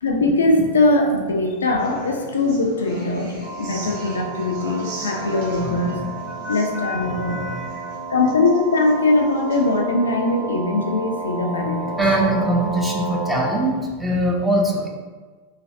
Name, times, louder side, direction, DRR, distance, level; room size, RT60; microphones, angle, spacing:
voice 1, 0.0-3.3 3.6-6.0 6.5-7.4 8.1-12.0, left 2 dB, 70° left, 2 dB, 0.3 m, -21 dB
Human voice / Acoustic guitar, 1.8-9.8, right 1 dB, 50° right, 1.0 m, -38 dB
sound 1, 3.4-13.5, right 3 dB, 85° right, 0.7 m, -32 dB
voice 2, 5.6-6.0 6.4-6.6 6.8-7.7 12.0-14.9, right 1 dB, 10° right, -2 dB, 0.5 m, -23 dB
3.2 x 2.2 x 2.5 m, 1.4 s
figure-of-eight pair, 90°, 0 cm